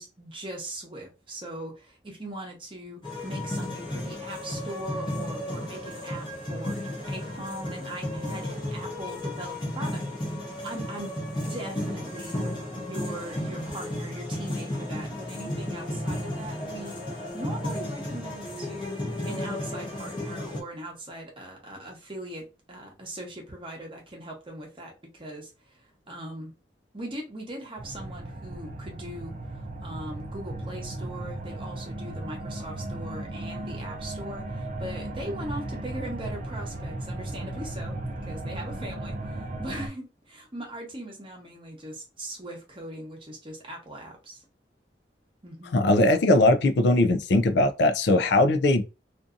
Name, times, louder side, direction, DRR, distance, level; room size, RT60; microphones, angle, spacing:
voice 1, 0.0-10.0 10.6-11.1 11.5-12.4 12.8-17.1 17.3-19.0 19.2-26.5 26.9-38.0 38.3-44.4 45.4-45.8, right 1 dB, 30° right, 0.8 m, -40 dB
sound 1, 3.0-20.6, left 1 dB, 25° left, 0.7 m, -33 dB
sound 2, 27.8-39.9, right 1 dB, 45° right, 0.4 m, -36 dB
voice 2, 45.7-48.8, left 2 dB, 70° left, 0.4 m, -20 dB
2.6 x 2.5 x 2.4 m
head